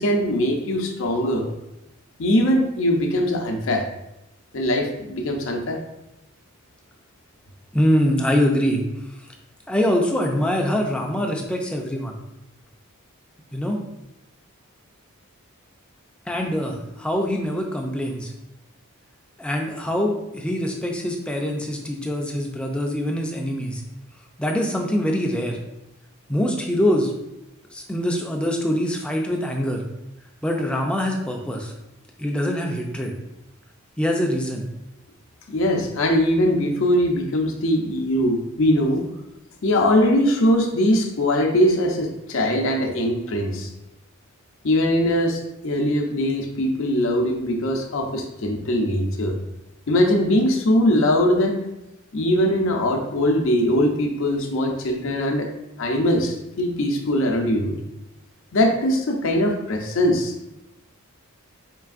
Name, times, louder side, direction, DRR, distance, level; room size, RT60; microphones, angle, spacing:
voice 1, 0.0-1.5 2.2-3.8 4.5-5.8 35.5-39.1 39.6-43.7 44.6-49.4 49.9-51.6 52.1-55.5 55.8-57.8 58.5-60.3, left 1 dB, 60° left, 2 dB, 0.6 m, -21 dB
voice 2, 7.7-8.8 9.2-9.3 9.7-12.2 13.5-13.8 16.3-18.3 19.4-23.8 24.4-25.6 26.3-27.1 27.7-29.8 30.4-31.7 32.2-33.1 34.0-34.6, equal, 5° left, 1 dB, 0.4 m, -24 dB
4.5 x 3.2 x 2.4 m, 0.90 s
head